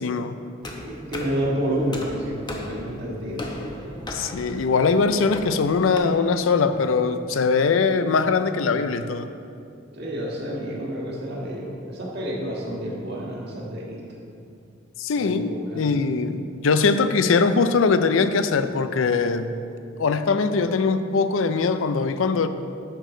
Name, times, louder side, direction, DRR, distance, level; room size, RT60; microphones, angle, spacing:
voice 1, 0.0-0.4 4.1-9.3 15.0-19.5 20.0-22.5, left 4 dB, 80° left, 10 dB, 0.5 m, -21 dB
sound 1, 0.6-6.0, left 1 dB, 20° left, 0.8 m, -37 dB
voice 2, 0.8-3.6 9.9-14.0 15.1-15.9, equal, 55° right, -3 dB, 1.7 m, -29 dB
10.0 x 6.4 x 3.8 m, 2.5 s
head